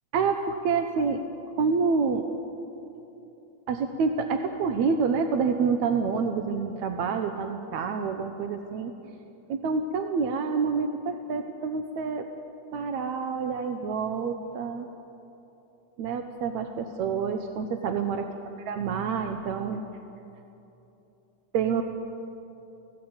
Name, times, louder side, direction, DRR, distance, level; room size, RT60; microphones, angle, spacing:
voice 1, 0.1-1.2 1.6-2.3 3.7-8.9 9.5-12.3 12.7-14.9 16.0-18.2 18.7-19.9 21.5-21.8, right 5 dB, 75° right, 6 dB, 2.3 m, -27 dB
29.5 x 17.0 x 8.9 m, 3.0 s
omnidirectional pair, 3.4 m